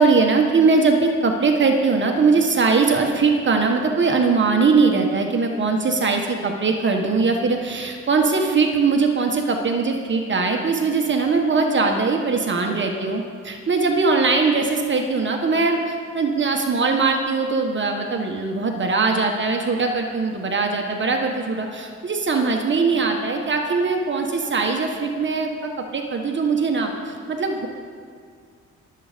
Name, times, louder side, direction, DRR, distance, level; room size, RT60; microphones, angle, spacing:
voice 1, 0.0-27.7, right 4 dB, 40° right, 2 dB, 1.5 m, -21 dB
22.5 x 8.0 x 5.2 m, 2.1 s
cardioid pair, 90°, 30 cm